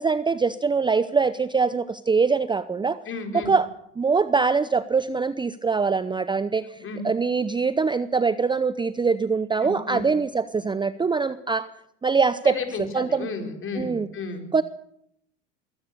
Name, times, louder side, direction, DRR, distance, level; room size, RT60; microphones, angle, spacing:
voice 1, 0.0-3.0 3.3-3.7 4.0-11.7 12.0-13.3 13.7-14.1 14.5-14.6, right 5 dB, 15° right, 15 dB, 0.7 m, -23 dB
voice 2, 3.1-3.5 6.8-7.0 9.6-10.1 12.4-14.4, left 4 dB, 35° left, 5 dB, 4.6 m, -33 dB
22.5 x 17.0 x 6.7 m, 0.75 s
hypercardioid pair, 85°, 36 cm